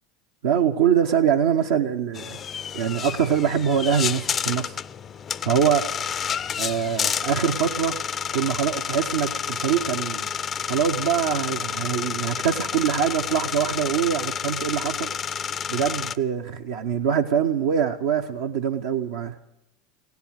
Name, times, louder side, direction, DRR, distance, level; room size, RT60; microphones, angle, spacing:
voice 1, 0.4-2.4 2.7-4.8 5.4-5.9 6.6-8.0 8.3-10.3 10.7-15.1 15.7-19.4, right 8 dB, 70° right, 0.7 m, -24 dB
sound 1, 2.1-16.2, left 7 dB, 35° left, 0.4 m, -30 dB
16.5 x 10.5 x 8.0 m
hypercardioid pair, 80°, 0 cm